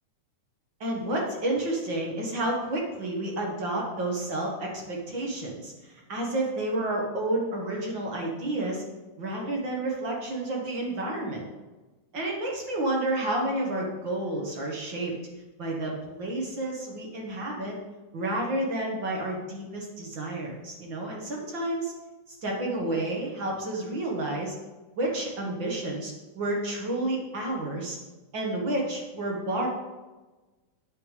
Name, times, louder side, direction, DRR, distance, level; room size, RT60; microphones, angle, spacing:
voice 1, 0.8-8.8 9.2-11.5 12.1-15.1 15.6-17.7 18.1-21.9 22.3-24.6 25.0-28.0 28.3-29.7, right 1 dB, 45° right, -1 dB, 1.9 m, -30 dB
8.5 x 5.8 x 6.6 m, 1.2 s
omnidirectional pair, 3.5 m